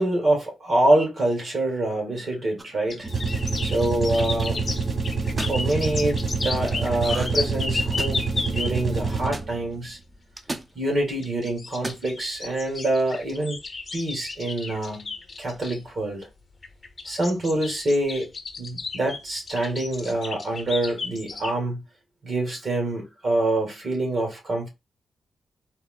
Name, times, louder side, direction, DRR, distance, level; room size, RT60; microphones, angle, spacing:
voice 1, 0.0-3.1 3.6-4.6 5.4-8.2 8.5-10.0 10.8-13.6 13.9-15.1 15.4-16.3 17.1-18.3 18.6-21.8 22.2-24.7, right 1 dB, 60° right, 2.1 m, -25 dB
sound 1, 2.6-2.9 3.7-4.5 5.2-5.6 7.0-7.5 7.7-8.3 9.3-9.5 10.4-10.7 11.7-12.1, right 2 dB, 30° right, 0.7 m, -35 dB
sound 2, 2.9-9.0 11.2-15.8 16.6-21.5, left 4 dB, 50° left, 0.7 m, -33 dB
sound 3, 3.0-9.6, right 4 dB, 45° right, 1.9 m, -27 dB
4.2 x 2.2 x 3.8 m
supercardioid pair, 50°, 0 cm